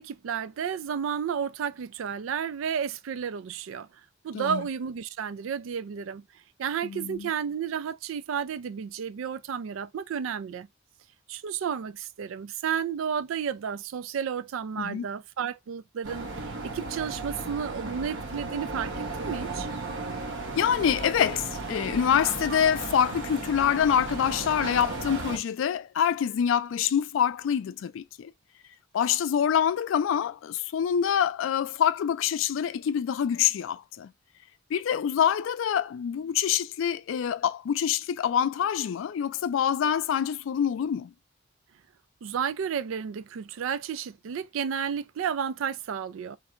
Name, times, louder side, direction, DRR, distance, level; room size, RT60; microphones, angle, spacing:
voice 1, 0.0-3.9 4.2-6.2 6.6-10.7 11.3-19.7 42.2-46.4, right 7 dB, 85° right, 0.3 m, -32 dB
voice 2, 6.8-7.3 14.8-15.1 20.5-28.3 28.9-34.1 34.7-41.1, left 8 dB, 75° left, 0.3 m, -26 dB
sound 1, 16.0-25.4, right 2 dB, 70° right, 1.1 m, -35 dB
3.2 x 2.7 x 2.4 m
head